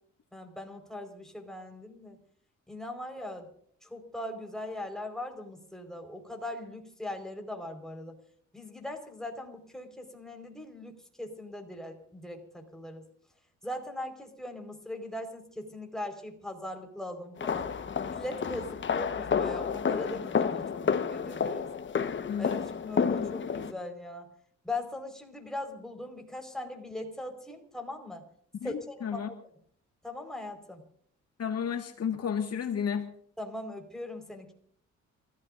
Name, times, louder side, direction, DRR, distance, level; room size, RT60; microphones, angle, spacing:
voice 1, 0.3-2.2 2.7-3.5 3.8-8.2 8.5-13.0 13.6-17.7 18.1-21.7 22.4-24.3 24.6-28.3 28.6-29.2 30.0-30.8 33.4-34.5, left 1 dB, ahead, 3 dB, 4.8 m, -40 dB
sound 1, 17.4-23.7, left 6 dB, 40° left, 1.3 m, -30 dB
voice 2, 22.3-22.7 28.6-28.7 29.0-29.3 31.4-33.1, left 7 dB, 55° left, 5 dB, 1.9 m, -32 dB
28.0 x 15.5 x 2.6 m, 0.64 s
cardioid pair, 90°, 30 cm